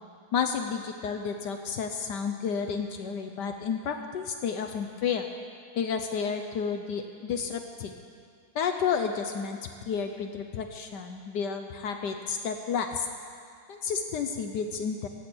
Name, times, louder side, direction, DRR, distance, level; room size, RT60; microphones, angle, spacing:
voice 1, 0.3-5.2 5.8-7.9 8.5-9.6 9.9-13.1 13.7-15.1, left 6 dB, 65° left, 5 dB, 1.1 m, -31 dB
16.0 x 8.5 x 6.1 m, 2.3 s
omnidirectional pair, 2.3 m